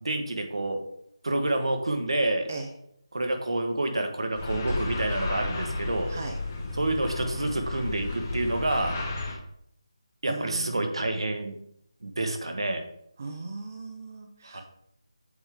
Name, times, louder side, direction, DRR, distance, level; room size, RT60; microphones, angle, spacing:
voice 1, 0.0-0.8 1.2-2.5 3.1-6.1 6.8-9.0 10.2-11.5 12.0-12.8 14.4-14.6, right 2 dB, 70° right, 5 dB, 1.1 m, -28 dB
sound 1, 4.3-9.3, left 2 dB, 20° left, 0.7 m, -32 dB
voice 2, 10.3-10.8 13.2-14.6, right 3 dB, 30° right, 2 dB, 0.5 m, -38 dB
7.8 x 3.6 x 3.5 m, 0.72 s
figure-of-eight pair, 175°, 3 cm